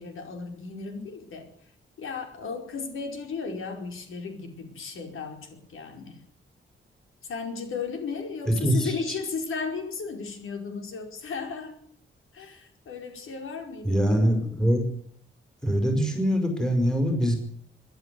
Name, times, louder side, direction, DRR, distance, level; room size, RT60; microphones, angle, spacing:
voice 1, 0.0-1.5 2.0-6.2 7.2-11.7 12.3-14.1, left 5 dB, 90° left, 4 dB, 5.0 m, -35 dB
voice 2, 8.5-8.9 13.8-14.8 15.6-17.3, equal, 5° left, 5 dB, 5.4 m, -23 dB
24.0 x 11.5 x 9.4 m, 0.64 s
wide cardioid pair, 160°, 21 cm